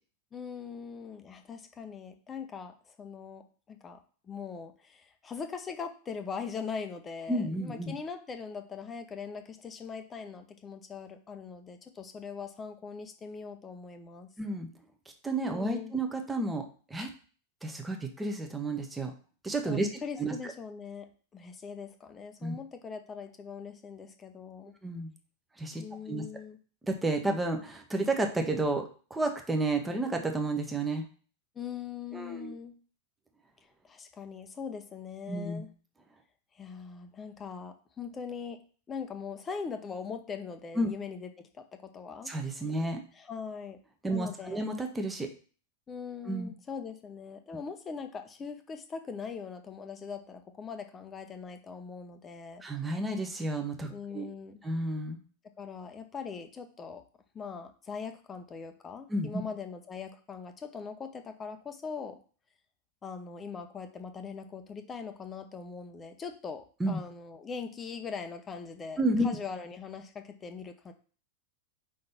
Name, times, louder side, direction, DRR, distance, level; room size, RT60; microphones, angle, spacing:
voice 1, 0.3-4.0 4.2-14.3 15.4-15.9 19.7-24.8 25.8-26.6 31.5-32.7 33.8-35.7 36.5-38.6 38.9-42.3 43.1-43.8 44.1-44.6 45.9-52.6 53.9-54.6 55.6-57.0 57.3-62.2 63.0-70.9, left 5 dB, 20° left, 7 dB, 0.8 m, -41 dB
voice 2, 7.3-7.9 14.4-14.7 15.2-17.1 17.6-19.1 19.4-19.9 20.2-20.3 22.4-22.5 24.8-25.1 25.6-26.2 26.9-31.0 32.1-32.5 35.3-35.6 40.8-40.9 42.3-43.0 44.0-45.3 46.3-46.5 52.6-54.2 54.6-55.2 59.1-59.4 66.8-67.0 69.0-69.3, right 2 dB, 10° right, 4 dB, 1.1 m, -31 dB
5.3 x 3.9 x 5.8 m, 0.40 s
figure-of-eight pair, 90°, 0 cm